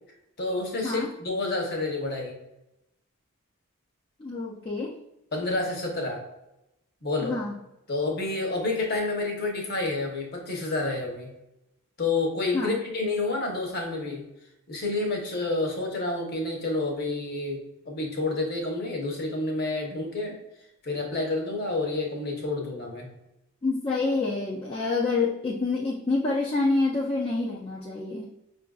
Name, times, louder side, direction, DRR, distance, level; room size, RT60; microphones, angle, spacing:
voice 1, 0.4-2.4 5.3-6.2 7.0-7.4 7.9-11.3 12.0-14.2 14.7-20.4 20.8-23.1, left 2 dB, 45° left, 0 dB, 0.8 m, -29 dB
voice 2, 4.2-4.9 7.2-7.5 12.5-12.8 23.6-28.3, left 3 dB, 25° left, -5 dB, 0.4 m, -27 dB
5.4 x 2.5 x 2.3 m, 0.88 s
head